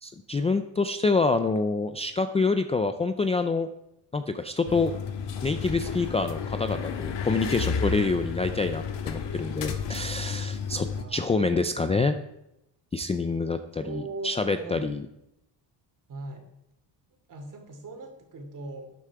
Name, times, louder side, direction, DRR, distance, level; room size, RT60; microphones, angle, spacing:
voice 1, 0.0-3.7 4.1-4.9 5.4-10.9 11.1-12.1 12.9-15.0, left 3 dB, 15° left, 9 dB, 0.4 m, -26 dB
sound 1, 4.7-11.0, left 6 dB, 70° left, 1.6 m, -32 dB
voice 2, 10.9-11.5 13.8-14.8 16.1-16.5 17.3-18.9, right 2 dB, 45° right, 4 dB, 2.7 m, -40 dB
12.5 x 9.9 x 4.8 m, 0.87 s
cardioid pair, 155°, 45 cm